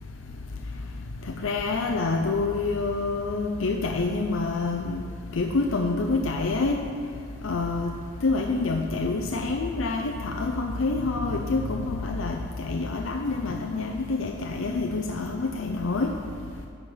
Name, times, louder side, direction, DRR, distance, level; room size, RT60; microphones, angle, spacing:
voice 1, 1.4-5.0 5.4-6.8 7.4-7.9 8.2-12.4 12.6-16.1, left 3 dB, 85° left, 2 dB, 0.5 m, -27 dB
9.9 x 4.4 x 6.5 m, 2.3 s
head